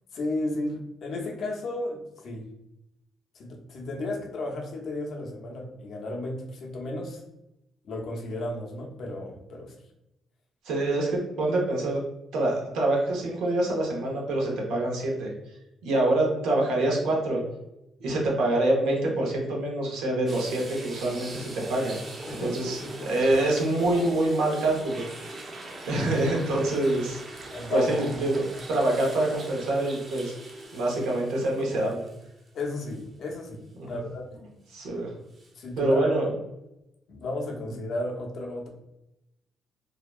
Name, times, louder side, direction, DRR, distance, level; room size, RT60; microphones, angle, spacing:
voice 1, 0.1-2.5 3.3-7.2 7.8-9.7 22.3-23.1 27.5-28.3 32.5-34.3 35.5-36.1 37.1-38.7, left 2 dB, 65° left, 1 dB, 0.6 m, -34 dB
voice 2, 10.6-12.0 12.3-15.3 15.8-17.4 18.0-22.0 22.4-25.0 25.5-27.2 27.7-30.3 30.7-32.0 33.8-34.0 34.7-35.1 35.8-36.3, right 2 dB, 90° right, -2 dB, 0.8 m, -26 dB
sound 1, 20.3-32.5 32.9-33.0 35.3-35.5, right 2 dB, 40° right, 0.6 m, -41 dB
2.7 x 2.2 x 2.3 m, 0.90 s
cardioid pair, 90°, 0 cm